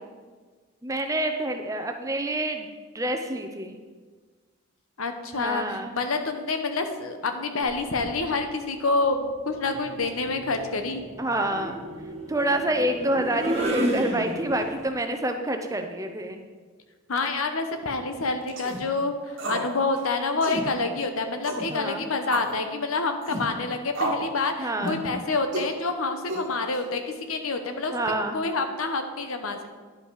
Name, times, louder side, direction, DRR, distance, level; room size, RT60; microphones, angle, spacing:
voice 1, 0.8-2.7 2.9-3.8 5.3-5.9 11.2-11.8 12.3-16.4 21.7-22.0 24.6-25.0 27.9-28.3, right 1 dB, 15° right, 5 dB, 0.5 m, -27 dB
voice 2, 5.0-11.0 17.1-27.9 28.3-29.7, left 3 dB, 85° left, 7 dB, 0.9 m, -27 dB
sound 1, 7.6-8.2 9.5-14.8, right 1 dB, 30° right, 1.4 m, -32 dB
sound 2, 18.5-18.8 19.4-19.7 20.0-20.1 20.4-20.7 21.4-21.7 22.3-22.6 23.2-23.5 23.9-24.3 24.8-25.0 25.5-25.7 26.3-26.8, right 2 dB, 65° right, 1.2 m, -31 dB
10.5 x 5.6 x 4.8 m, 1.5 s
head